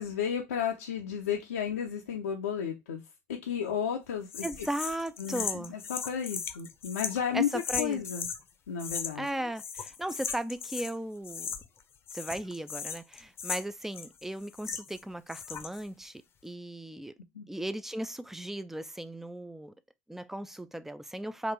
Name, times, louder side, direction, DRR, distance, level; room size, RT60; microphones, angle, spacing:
voice 1, 0.0-3.0 3.3-4.7 5.2-7.5 7.8-8.3 8.7-9.3 17.3-17.4, left 8 dB, 80° left, 0.6 m, -33 dB
sound 1, 4.3-8.4 8.8-9.3 9.6-11.0 11.2-11.8 12.1-15.0 15.3-15.8, left 6 dB, 35° left, 0.7 m, -37 dB
voice 2, 4.4-5.8 7.3-8.0 9.2-11.5 12.1-17.1 17.5-19.7 20.1-21.5, right 1 dB, 5° right, 0.4 m, -36 dB
3.9 x 2.5 x 4.4 m
figure-of-eight pair, 75°, 7 cm